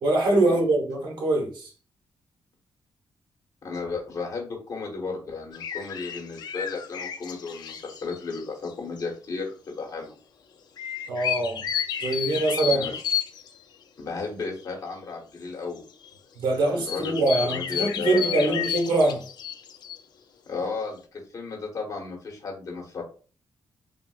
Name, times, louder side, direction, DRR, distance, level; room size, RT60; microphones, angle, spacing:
voice 1, 0.0-1.7 11.1-11.6 12.0-12.9 16.4-19.2, right 2 dB, 80° right, 1.0 m, -23 dB
voice 2, 3.6-10.1 12.7-13.0 14.0-15.8 16.5-17.2 17.4-18.6 20.5-21.0 21.3-23.0, left 4 dB, 45° left, 1.1 m, -34 dB
sound 1, 5.5-8.7 9.0-9.1 10.8-13.5 14.6-14.7 15.8-16.1 16.8-20.0, left 9 dB, 60° left, 0.4 m, -31 dB
3.6 x 2.4 x 2.3 m
cardioid pair, 130°, 8 cm